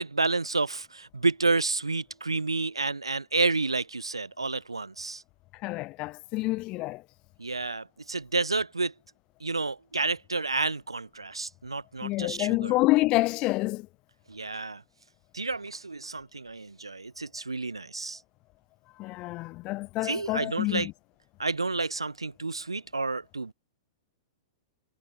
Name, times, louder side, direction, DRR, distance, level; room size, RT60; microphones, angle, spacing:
voice 1, 0.0-5.2 7.4-8.9 9.4-12.8 14.3-14.8 15.3-18.2 20.0-20.9 21.4-23.5, right 3 dB, 80° right, 1.0 m, -30 dB
voice 2, 5.6-7.0 12.0-13.9 19.0-20.9, left 20 dB, 35° left, 0.4 m, -27 dB
figure-of-eight pair, 100°, 3 cm